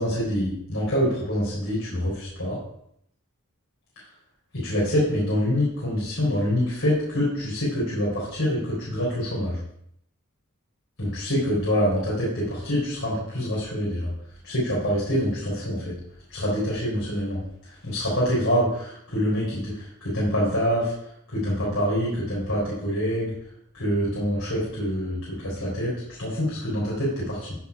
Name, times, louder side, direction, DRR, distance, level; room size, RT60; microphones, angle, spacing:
voice 1, 0.0-2.6 4.5-9.6 11.0-14.1 14.4-16.0 16.3-17.4 17.8-20.9 21.3-23.3 23.7-25.9 26.2-27.6, equal, 85° left, -6 dB, 4.2 m, -25 dB
14.5 x 4.9 x 4.9 m, 0.72 s
head